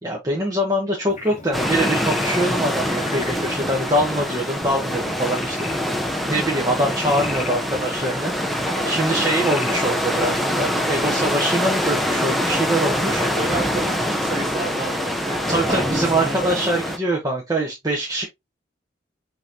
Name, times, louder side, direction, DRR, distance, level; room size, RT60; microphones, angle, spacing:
voice 1, 0.0-5.7 6.0-8.3 8.9-13.2 15.5-18.2, right 1 dB, 20° right, 0.9 m, -23 dB
Frog, 1.1-9.7, left 5 dB, 40° left, 0.8 m, -38 dB
sound 1, 1.5-17.0, equal, ahead, 0.5 m, -24 dB
voice 2, 8.6-9.1 13.2-16.7, right 3 dB, 35° right, 2.0 m, -31 dB
5.5 x 2.9 x 2.7 m
head